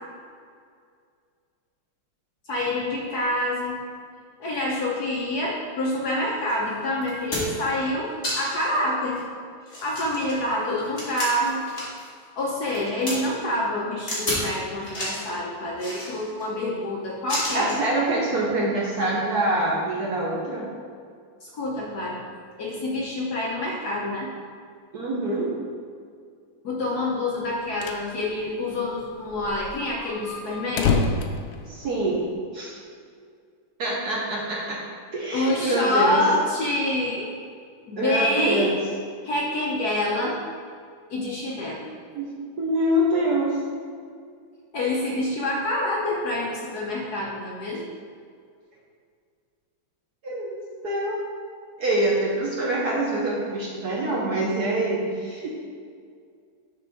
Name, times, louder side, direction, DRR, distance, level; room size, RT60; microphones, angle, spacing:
voice 1, 2.5-3.8 4.4-9.2 9.7-11.7 12.3-17.8 21.4-22.2 22.6-24.3 26.6-30.9 35.3-37.3 37.9-38.7 39.2-40.4 41.1-41.9 44.7-47.8, left 1 dB, 60° left, -3 dB, 1.1 m, -27 dB
sound 1, 6.5-6.6 7.0-7.7 8.2-8.7 9.1-9.2 9.7-12.1 12.4-13.1 14.1-14.5 14.8-15.3 15.8-16.5 17.3-17.8 18.9-19.1, left 1 dB, 35° left, 2.0 m, -31 dB
voice 2, 17.5-20.7 24.9-25.5 31.7-32.3 32.5-32.8 33.8-34.8 35.1-36.3 38.0-38.7 42.1-42.3 42.6-43.6 50.2-51.2 51.8-55.5, right 1 dB, 60° right, -4 dB, 1.1 m, -25 dB
sound 2, 27.4-28.1 28.4-28.5 28.7-28.8 29.3-32.3, left 4 dB, 85° left, 0.9 m, -27 dB
6.8 x 6.0 x 3.5 m, 2.2 s
omnidirectional pair, 2.4 m